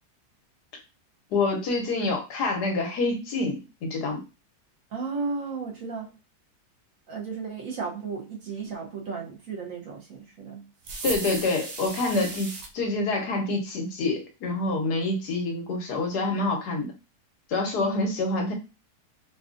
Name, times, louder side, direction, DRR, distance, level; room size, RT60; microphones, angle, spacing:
voice 1, 1.3-4.2 11.0-16.9 17.5-18.5, left 3 dB, 75° left, 1.4 m, -27 dB
voice 2, 4.9-6.1 7.1-10.7 17.8-18.0, right 4 dB, 60° right, 1.1 m, -34 dB
sound 1, 10.8-12.7, right 4 dB, 85° right, 1.3 m, -35 dB
4.9 x 2.3 x 2.5 m
omnidirectional pair, 1.8 m